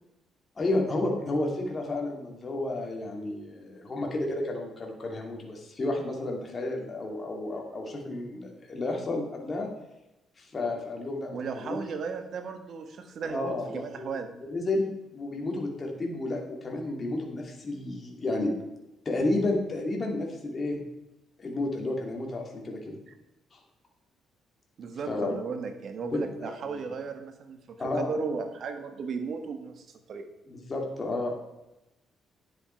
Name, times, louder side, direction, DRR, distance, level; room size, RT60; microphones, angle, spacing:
voice 1, 0.6-9.7 10.4-11.8 13.2-14.1 14.5-18.5 19.0-20.8 21.4-23.0 23.5-23.6 25.1-25.3 26.1-26.9 27.8-28.1 30.5-31.3, left 2 dB, 35° left, 0 dB, 2.6 m, -31 dB
voice 2, 11.3-14.3 23.1-23.2 24.8-30.3, right 5 dB, 60° right, 6 dB, 1.5 m, -35 dB
10.0 x 7.9 x 4.5 m, 0.93 s
cardioid pair, 90°, 0 cm